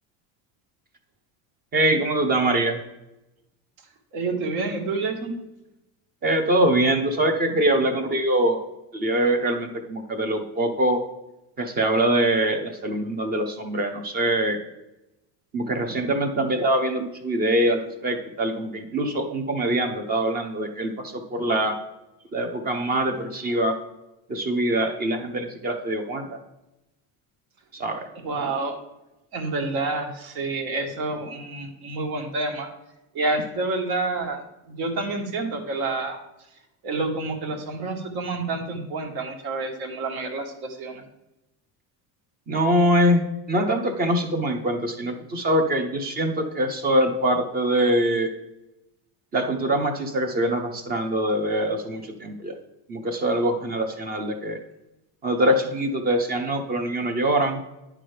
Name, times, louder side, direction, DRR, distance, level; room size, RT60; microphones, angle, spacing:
voice 1, 1.7-2.8 6.2-8.6 8.9-11.0 11.6-14.6 15.5-21.8 22.3-23.8 24.3-26.4 27.7-28.0 42.5-48.3 49.3-52.5 52.9-54.6 55.2-57.6, right 1 dB, 20° right, 6 dB, 0.7 m, -23 dB
voice 2, 4.1-5.3 28.2-28.8 29.3-32.7 33.1-36.2 36.8-41.0, right 3 dB, 60° right, 4 dB, 1.6 m, -28 dB
9.5 x 6.0 x 3.3 m, 0.95 s
cardioid pair, 175°, 42 cm